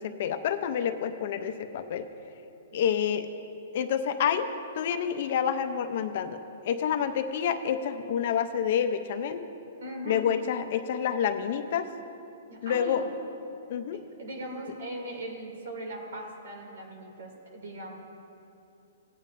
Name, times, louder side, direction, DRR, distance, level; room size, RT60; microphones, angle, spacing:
voice 1, 0.0-2.1 2.7-3.3 3.7-4.5 4.7-6.4 6.7-9.4 10.1-11.9 12.6-13.0 13.7-14.0, left 8 dB, 45° left, 9 dB, 0.5 m, -28 dB
voice 2, 9.8-10.2 12.5-13.1 13.9-18.0, right 1 dB, 75° right, 1 dB, 2.6 m, -39 dB
18.0 x 9.1 x 2.6 m, 2.8 s
hypercardioid pair, 170°, 0 cm